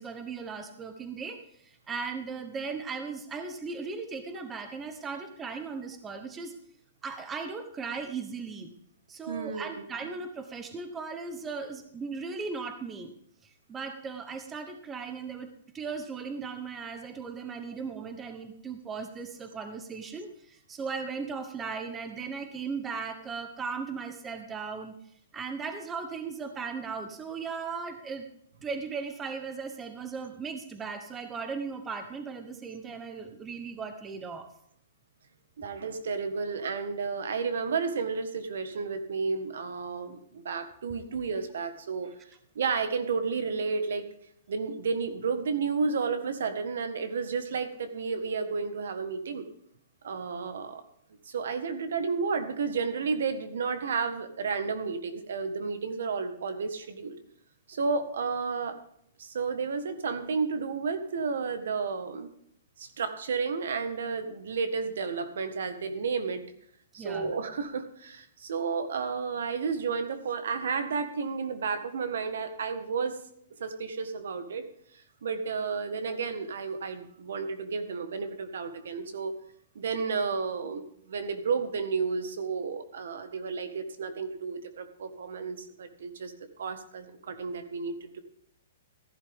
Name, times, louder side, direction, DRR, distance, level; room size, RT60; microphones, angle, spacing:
voice 1, 0.0-6.5 7.0-8.7 9.1-13.1 13.4-24.9 25.3-28.2 28.6-34.5 67.0-67.3, right 5 dB, 10° right, 8 dB, 1.0 m, -37 dB
voice 2, 9.3-9.8 35.6-42.1 42.6-44.0 44.5-49.5 50.0-50.8 51.3-57.2 57.7-58.8 59.2-62.3 62.8-66.4 66.9-73.2 73.6-74.7 75.2-79.3 79.8-86.3 86.6-88.2, right 5 dB, 75° right, 9 dB, 1.6 m, -32 dB
15.0 x 11.0 x 3.6 m, 0.68 s
hypercardioid pair, 165°, 0 cm